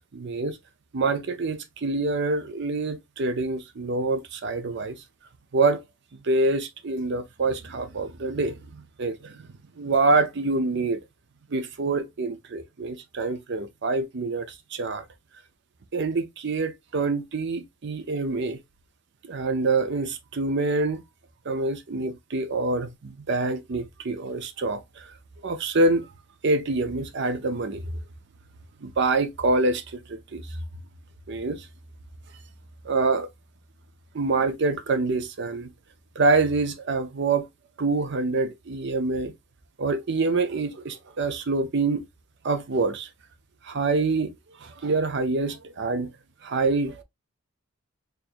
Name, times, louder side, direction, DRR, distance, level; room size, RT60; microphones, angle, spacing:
voice 1, 0.1-0.6 0.9-5.0 5.5-5.8 6.2-9.4 9.8-11.0 11.5-15.0 15.9-18.6 19.2-21.0 21.5-25.1 25.4-26.1 26.4-27.9 28.8-30.4 31.3-31.7 32.8-33.3 34.1-35.7 36.2-37.5 37.8-39.3 39.8-42.0 42.4-43.1 43.6-44.3 44.6-46.1 46.4-47.0, right 3 dB, 55° right, 0.6 m, -26 dB
4.4 x 2.6 x 2.4 m
head